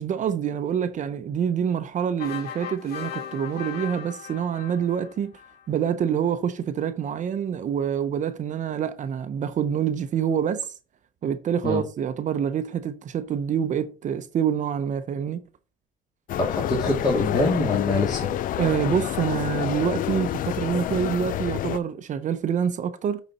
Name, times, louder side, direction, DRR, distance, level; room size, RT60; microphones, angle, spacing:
voice 1, 0.0-5.3 5.7-10.7 11.2-15.4 18.6-23.2, right 8 dB, 45° right, 0.7 m, -26 dB
sound 1, 2.2-5.7, left 9 dB, 70° left, 1.0 m, -38 dB
sound 2, 16.3-21.8, left 12 dB, 55° left, 0.4 m, -28 dB
voice 2, 16.4-18.3, left 2 dB, 25° left, 2.1 m, -24 dB
9.5 x 4.1 x 4.1 m
cardioid pair, 110°, 17 cm